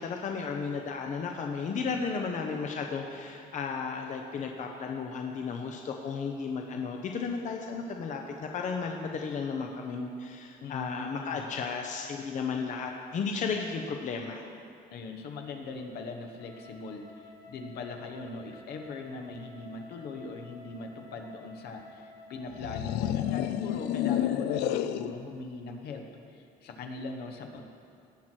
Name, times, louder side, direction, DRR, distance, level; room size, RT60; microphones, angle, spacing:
voice 1, 0.0-14.4, left 5 dB, 45° left, 2 dB, 0.8 m, -34 dB
voice 2, 10.6-11.4 14.9-27.7, left 3 dB, 70° left, 4 dB, 1.1 m, -40 dB
Wind instrument woodwind instrument, 16.4-22.8, left 3 dB, 20° left, 0.9 m, -52 dB
sound 1, 22.5-25.2, left 11 dB, 90° left, 0.4 m, -29 dB
17.5 x 6.1 x 4.5 m, 2.4 s
cardioid pair, 110°, 17 cm